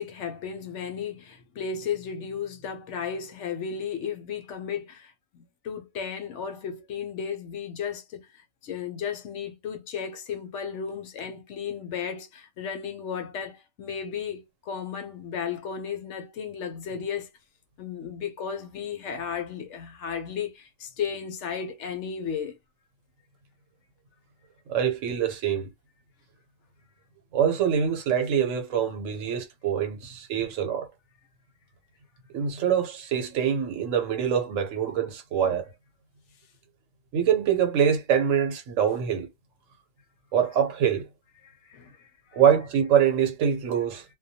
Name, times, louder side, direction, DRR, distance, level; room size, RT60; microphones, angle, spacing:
voice 1, 0.0-17.3 17.8-22.5 41.4-42.4, left 7 dB, 70° left, 0.9 m, -34 dB
voice 2, 24.7-25.7 27.3-30.9 32.3-35.6 37.1-39.3 40.3-41.0 42.3-44.0, right 8 dB, 80° right, 1.1 m, -24 dB
2.2 x 2.2 x 2.7 m
omnidirectional pair, 1.3 m